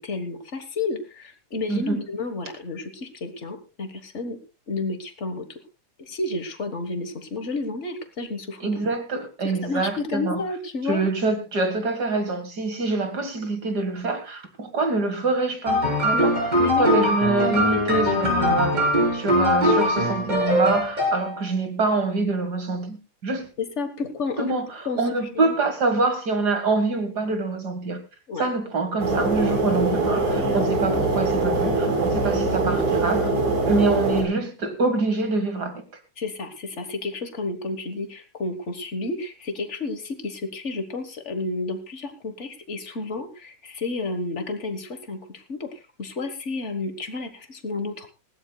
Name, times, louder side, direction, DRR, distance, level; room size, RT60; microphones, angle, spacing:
voice 1, 0.0-4.4 4.7-5.5 6.0-8.8 9.6-11.0 16.1-16.3 16.5-16.9 23.8-24.6 24.8-25.0 25.3-25.5 28.3-28.5 36.2-48.1, left 3 dB, 50° left, 0.8 m, -31 dB
voice 2, 1.7-2.0 8.6-10.4 10.9-16.5 16.8-18.8 19.1-23.5 24.4-28.0 28.4-33.4 33.7-35.8, right 3 dB, 40° right, 1.8 m, -25 dB
sound 1, 15.7-21.4, equal, 15° right, 4.3 m, -21 dB
sound 2, 29.0-34.2, right 2 dB, 65° right, 5.9 m, -23 dB
20.0 x 16.0 x 2.3 m
omnidirectional pair, 3.5 m